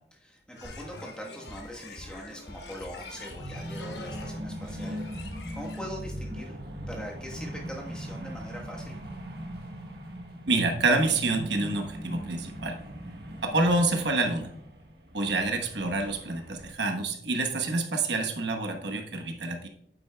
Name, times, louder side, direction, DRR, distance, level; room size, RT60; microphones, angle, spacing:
voice 1, 0.1-5.0 5.5-6.6 6.9-9.0, equal, 5° left, -2 dB, 1.2 m, -42 dB
sound 1, 0.5-5.8, left 3 dB, 75° left, 1.1 m, -46 dB
Drum kit, 0.6-6.0, left 1 dB, 55° left, 1.4 m, -48 dB
sound 2, 3.2-16.7, equal, 65° right, 1.4 m, -40 dB
voice 2, 10.4-12.8 13.4-14.5 15.1-19.7, right 2 dB, 85° right, 4 dB, 1.1 m, -27 dB
8.7 x 8.4 x 2.3 m, 0.72 s
head